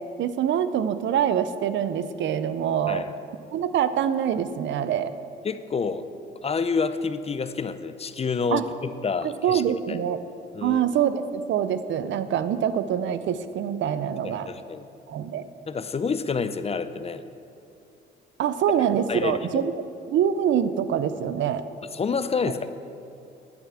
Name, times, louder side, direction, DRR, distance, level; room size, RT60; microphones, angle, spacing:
voice 1, 0.2-3.1 3.5-5.1 8.5-8.6 9.4-10.2 10.6-14.5 15.1-15.5 18.4-19.7 20.1-21.6, right 9 dB, 70° right, 12 dB, 0.6 m, -25 dB
voice 2, 5.4-6.1 6.4-9.6 9.9-10.0 10.5-10.8 14.2-14.9 15.7-17.2 19.1-19.6 21.9-22.7, left 5 dB, 30° left, 12 dB, 0.5 m, -28 dB
10.5 x 5.8 x 8.3 m, 2.6 s
cardioid pair, 90°, 20 cm